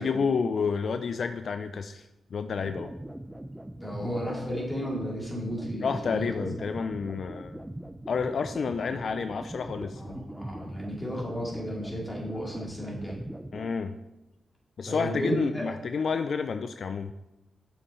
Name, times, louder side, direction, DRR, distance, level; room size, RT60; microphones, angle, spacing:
voice 1, 0.0-2.9 5.8-7.6 8.1-10.2 13.5-14.0 14.8-17.1, left 5 dB, 65° left, 9 dB, 0.3 m, -30 dB
sound 1, 2.6-13.7, right 1 dB, 10° right, 0.5 m, -41 dB
voice 2, 3.8-6.5 10.0-13.2 14.9-15.6, equal, 10° left, -3 dB, 2.6 m, -33 dB
6.8 x 5.7 x 4.3 m, 0.95 s
cardioid pair, 80°, 0 cm